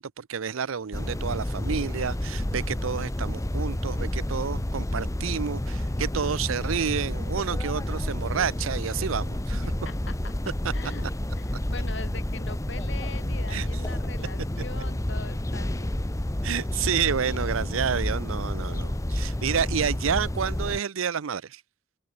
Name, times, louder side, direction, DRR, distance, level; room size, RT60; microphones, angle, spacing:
voice 1, 0.0-9.6 13.5-13.7 16.4-21.6, right 7 dB, 80° right, 0.6 m, -29 dB
sound 1, 0.9-20.8, left 1 dB, 15° left, 0.8 m, -30 dB
voice 2, 9.5-10.3 10.7-11.1 11.3-16.0, left 3 dB, 60° left, 4.8 m, -42 dB
head